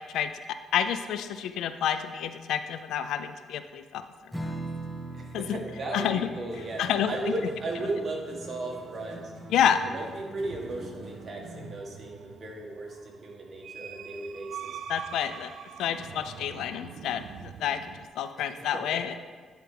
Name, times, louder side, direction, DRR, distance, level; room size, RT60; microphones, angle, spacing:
voice 1, 0.0-4.5 5.3-5.6 5.9-6.3 6.8-7.1 9.5-9.8 14.9-15.5 15.8-19.4, left 9 dB, 85° left, 11 dB, 0.3 m, -29 dB
Strum, 4.3-11.2, right 2 dB, 10° left, 0.7 m, -42 dB
voice 2, 5.1-9.3 9.9-14.8 18.7-19.0, right 2 dB, 40° right, -1 dB, 1.6 m, -36 dB
sound 1, 6.5-11.8, right 2 dB, 60° right, 1.4 m, -46 dB
sound 2, 10.1-18.1, right 8 dB, 75° right, 0.3 m, -45 dB
10.0 x 4.6 x 3.3 m, 1.5 s
cardioid pair, 90°, 0 cm